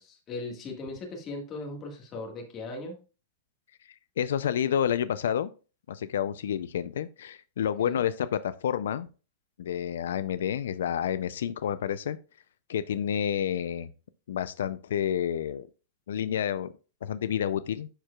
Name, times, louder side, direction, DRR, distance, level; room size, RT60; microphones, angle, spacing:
voice 1, 0.0-3.0 7.8-8.0, left 2 dB, 20° left, 2 dB, 1.6 m, -38 dB
voice 2, 3.9-5.5 5.9-9.1 9.6-12.2 12.7-13.9 14.3-15.7 16.1-16.7 17.0-17.9, left 9 dB, 85° left, 14 dB, 0.4 m, -29 dB
11.0 x 4.5 x 2.3 m, 0.33 s
supercardioid pair, 170°, 0 cm